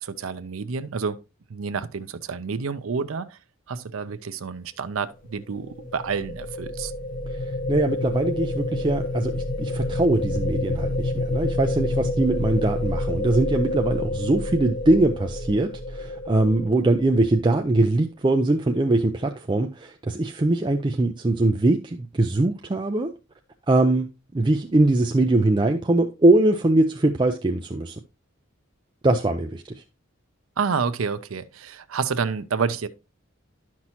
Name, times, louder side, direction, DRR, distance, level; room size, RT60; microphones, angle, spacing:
voice 1, 0.0-1.2 1.5-3.4 3.7-6.9 30.6-32.9, right 5 dB, 80° right, 0.6 m, -29 dB
sound 1, 5.4-17.6, left 1 dB, 40° left, 0.5 m, -28 dB
voice 2, 7.4-23.1 23.7-24.1 24.3-28.0 29.0-29.8, right 2 dB, 25° right, 0.4 m, -22 dB
11.0 x 5.9 x 2.9 m
head